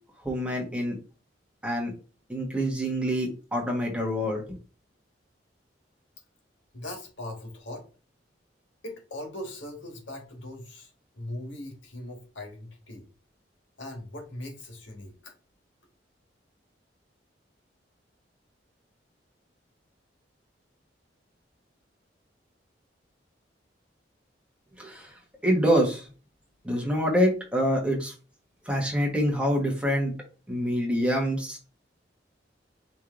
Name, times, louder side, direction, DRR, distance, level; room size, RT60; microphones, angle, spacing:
voice 1, 0.2-1.0 1.6-1.9 2.3-4.4 24.8-25.1 25.4-26.1 26.6-28.1 28.7-30.2 30.5-31.7, equal, 5° right, -1 dB, 1.1 m, -26 dB
voice 2, 6.7-7.8 8.8-13.1 13.8-15.3, left 1 dB, 90° left, 1 dB, 1.6 m, -40 dB
5.3 x 3.1 x 2.5 m, 0.34 s
head